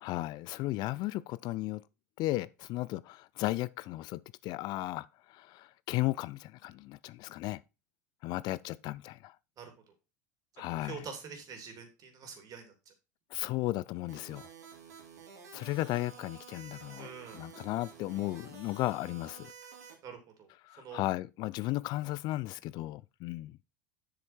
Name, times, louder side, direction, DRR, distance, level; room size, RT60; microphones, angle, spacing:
voice 1, 0.0-1.8 2.2-7.6 8.2-9.3 10.6-11.0 13.3-14.4 15.5-17.1 17.3-19.5 20.6-23.6, left 17 dB, 55° left, 0.4 m, -35 dB
voice 2, 10.6-12.9 17.0-17.5 20.0-20.5 20.8-21.1, right 6 dB, 45° right, 3.1 m, -46 dB
sound 1, 14.1-19.9, right 6 dB, 85° right, 2.9 m, -51 dB
7.7 x 6.5 x 4.4 m
hypercardioid pair, 90°, 9 cm